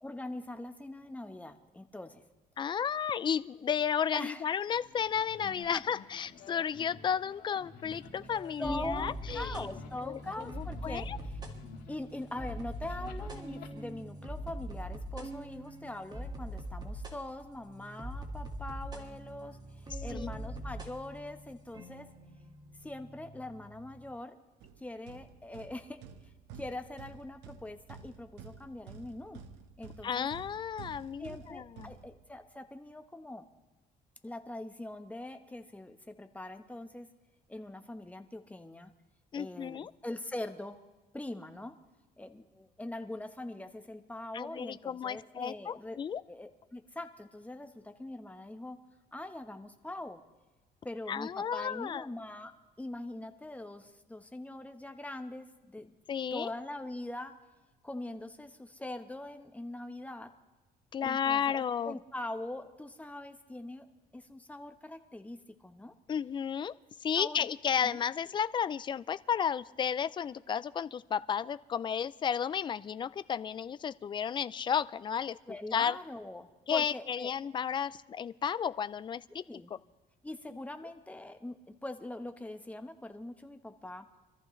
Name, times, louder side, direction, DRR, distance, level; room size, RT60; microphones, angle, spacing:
voice 1, 0.0-2.2 4.1-4.4 5.7-5.8 8.6-11.4 11.9-22.1 22.8-24.3 24.8-26.0 26.5-29.4 29.8-30.3 31.2-33.5 34.2-37.1 37.5-38.9 39.3-40.8 41.1-41.7 42.2-46.0 46.3-48.8 49.1-50.2 50.8-52.5 52.8-56.0 56.3-57.3 57.8-60.3 61.0-63.9 64.1-65.9 67.2-67.5 67.8-68.0 75.5-77.3 79.5-79.7 80.2-84.1, left 1 dB, 10° left, 7 dB, 1.1 m, -42 dB
voice 2, 2.6-9.7 10.0-11.2 20.1-20.3 30.0-31.9 39.3-39.9 44.3-46.2 51.1-52.0 56.1-56.5 60.9-62.0 66.1-66.7 67.0-75.4 75.7-76.0 76.7-79.6, left 8 dB, 30° left, 16 dB, 0.4 m, -33 dB
sound 1, 4.7-13.7, left 6 dB, 70° left, 2.2 m, -51 dB
sound 2, 7.8-24.1, right 1 dB, 25° right, 1.9 m, -43 dB
sound 3, 24.6-32.6, right 6 dB, 85° right, 1.2 m, -51 dB
24.5 x 14.0 x 3.2 m, 1.1 s
cardioid pair, 110°, 17 cm